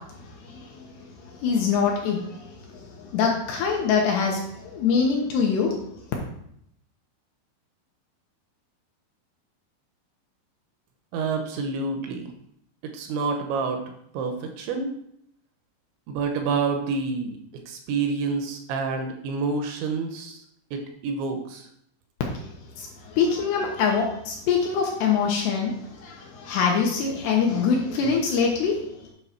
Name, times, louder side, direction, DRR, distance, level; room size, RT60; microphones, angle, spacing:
voice 1, 0.4-0.9 1.3-5.7 22.4-22.5 22.8-28.8, left 6 dB, 75° left, 0 dB, 2.6 m, -24 dB
voice 2, 11.1-12.3 12.8-13.8 14.1-14.9 16.1-17.4 17.7-20.4 20.7-21.7, right 4 dB, 80° right, 4 dB, 2.9 m, -28 dB
9.3 x 3.7 x 5.8 m, 0.72 s
omnidirectional pair, 5.6 m